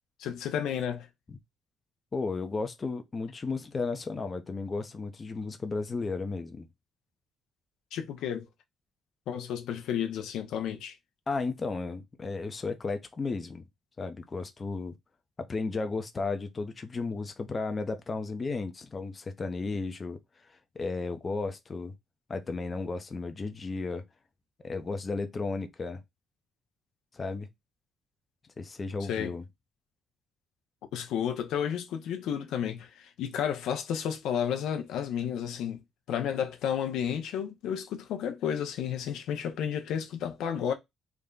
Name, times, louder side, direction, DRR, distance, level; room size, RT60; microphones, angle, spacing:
voice 1, 0.2-1.1 7.9-8.5 9.3-11.0 29.1-29.3 30.9-35.8 36.1-40.7, left 8 dB, 85° left, 0.6 m, -32 dB
voice 2, 2.1-6.7 11.3-13.6 14.0-15.0 15.4-20.2 20.5-21.9 22.3-24.0 24.6-26.0 27.1-27.5 28.6-29.4, left 3 dB, 35° left, 0.6 m, -34 dB
3.5 x 2.1 x 3.8 m
cardioid pair, 90°, 0 cm